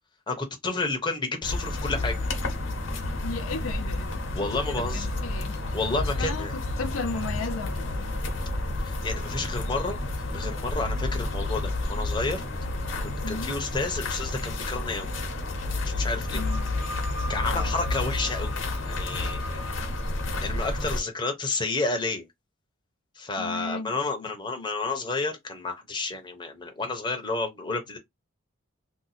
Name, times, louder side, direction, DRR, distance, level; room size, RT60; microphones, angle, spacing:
voice 1, 0.3-2.2 4.3-5.1 5.7-6.5 8.8-10.0 10.3-12.4 13.0-15.1 15.8-16.4 17.3-18.5 18.9-19.7 20.4-22.3 23.2-28.0, left 3 dB, 20° left, 0.7 m, -30 dB
sound 1, 1.4-21.0, left 2 dB, 65° left, 0.9 m, -30 dB
voice 2, 3.2-4.2 4.7-5.6 6.2-8.1 13.2-13.5 16.3-16.7 17.5-17.7 23.4-23.9, left 3 dB, 85° left, 0.6 m, -35 dB
2.7 x 2.3 x 4.0 m
head